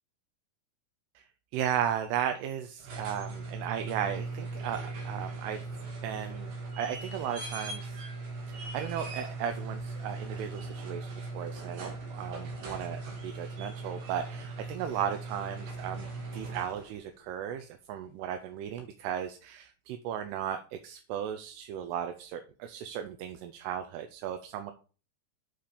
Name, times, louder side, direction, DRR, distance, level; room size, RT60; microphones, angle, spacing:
voice 1, 1.5-5.6 6.0-8.0 8.5-16.1 16.3-24.7, right 9 dB, 85° right, 7 dB, 2.6 m, -35 dB
sound 1, 2.7-17.0 18.8-18.9, right 3 dB, 65° right, 2.4 m, -39 dB
7.6 x 4.5 x 5.0 m, 0.36 s
omnidirectional pair, 4.8 m